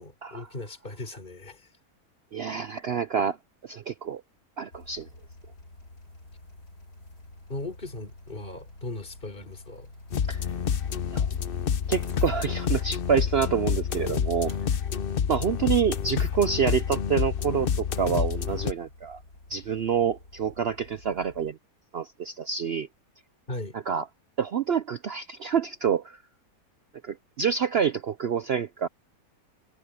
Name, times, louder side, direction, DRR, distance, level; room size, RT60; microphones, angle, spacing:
voice 1, 0.0-1.7 7.5-9.9 23.5-23.8, left 2 dB, 30° left, 4.1 m, -38 dB
voice 2, 2.3-3.4 3.6-4.2 4.6-5.1 10.3-10.5 11.1-11.4 11.9-14.5 15.3-19.2 19.5-21.6 21.9-22.9 23.9-24.1 24.4-26.2 27.0-28.9, right 7 dB, 65° right, 0.6 m, -27 dB
sound 1, 4.7-13.3 14.5-21.5, left 2 dB, 75° left, 6.3 m, -50 dB
sound 2, 10.1-18.7, left 7 dB, 50° left, 0.7 m, -28 dB
omnidirectional pair, 1.7 m